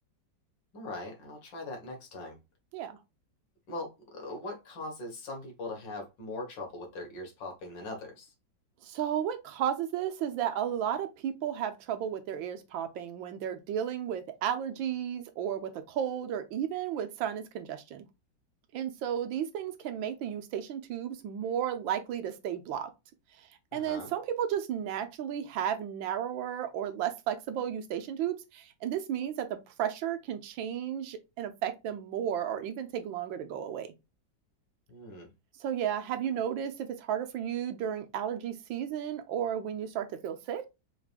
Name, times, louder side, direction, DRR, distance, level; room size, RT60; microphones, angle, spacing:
voice 1, 0.7-2.4 3.7-8.3 23.7-24.1 34.9-35.3, left 2 dB, 65° left, 2.1 m, -41 dB
voice 2, 8.8-18.0 18.7-22.9 23.7-33.9 35.6-40.6, right 9 dB, 75° right, 1.4 m, -33 dB
4.7 x 3.6 x 2.4 m
omnidirectional pair, 2.1 m